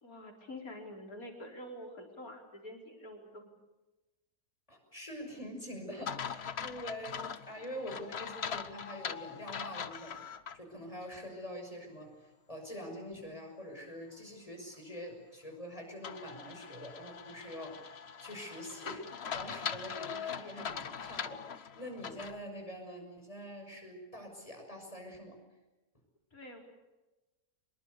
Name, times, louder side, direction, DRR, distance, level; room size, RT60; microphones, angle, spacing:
voice 1, 0.0-3.5 26.3-26.6, left 1 dB, 60° left, 2 dB, 4.9 m, -47 dB
voice 2, 4.7-10.2 10.5-25.4, equal, 20° left, 2 dB, 6.4 m, -45 dB
sound 1, 6.1-10.6 11.0-11.1 16.0-22.4, left 7 dB, 45° left, 1.1 m, -41 dB
25.5 x 22.0 x 8.3 m, 1.1 s
omnidirectional pair, 1.7 m